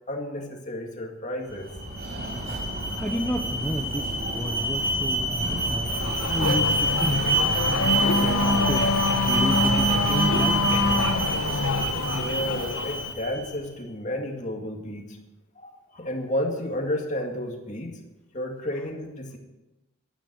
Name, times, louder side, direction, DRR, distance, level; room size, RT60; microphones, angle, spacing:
voice 1, 0.1-1.7 11.9-15.2 15.6-18.0 18.3-19.4, left 1 dB, 35° left, 2 dB, 2.2 m, -32 dB
Alarm, 1.5-13.6, right 2 dB, 45° right, 5.5 m, -27 dB
voice 2, 2.8-7.2 7.7-10.7, equal, 5° left, 2 dB, 0.7 m, -32 dB
Race car auto racing / Accelerating revving vroom, 5.9-13.1, left 2 dB, 75° left, 1.1 m, -25 dB
13.0 x 9.9 x 7.9 m, 1.0 s
head